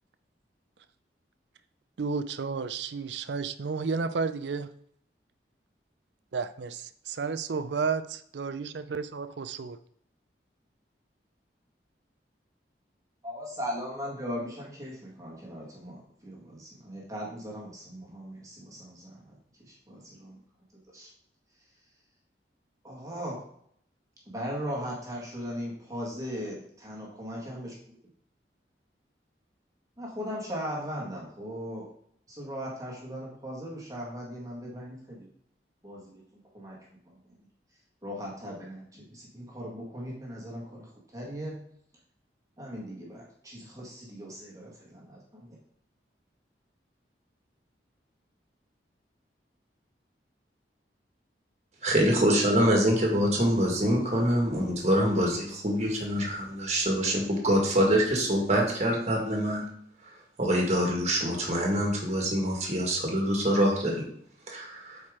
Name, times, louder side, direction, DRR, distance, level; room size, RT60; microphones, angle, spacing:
voice 1, 2.0-4.7 6.3-9.8, right 5 dB, 80° right, 13 dB, 0.5 m, -32 dB
voice 2, 13.2-19.4 19.6-20.4 20.9-21.1 22.8-23.5 24.2-28.0 30.0-31.9 32.3-35.3 35.8-36.2 36.5-37.4 38.0-41.6 42.6-45.6, equal, 20° right, -4 dB, 1.7 m, -38 dB
voice 3, 51.8-59.6 60.4-64.0 64.5-65.0, equal, 40° right, 0 dB, 1.8 m, -25 dB
8.6 x 4.8 x 3.7 m, 0.66 s
head